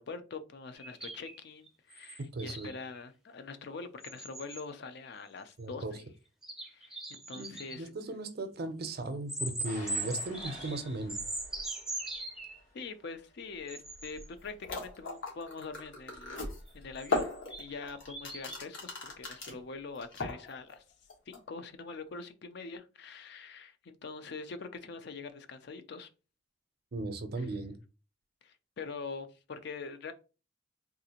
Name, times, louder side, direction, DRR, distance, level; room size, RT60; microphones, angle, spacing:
voice 1, 0.0-6.0 6.6-7.9 12.7-17.3 17.6-20.8 21.3-26.1 27.4-27.5 28.4-30.1, left 4 dB, 60° left, 0.4 m, -44 dB
sound 1, 0.8-3.0 4.0-4.6 5.5-5.6 6.4-7.8 9.3-12.6 13.7-14.3 16.7-18.6, right 2 dB, 5° right, 0.5 m, -40 dB
voice 2, 2.3-2.7 5.6-5.9 7.4-11.2 26.9-27.8, right 2 dB, 55° right, 0.5 m, -37 dB
sound 2, 9.6-18.4 19.2-19.6 20.2-20.3, left 1 dB, 40° left, 1.0 m, -53 dB
sound 3, 14.4-14.5 14.6-19.6 20.0-20.7 21.1-21.4, left 3 dB, 75° left, 1.2 m, -36 dB
3.7 x 2.4 x 2.8 m
head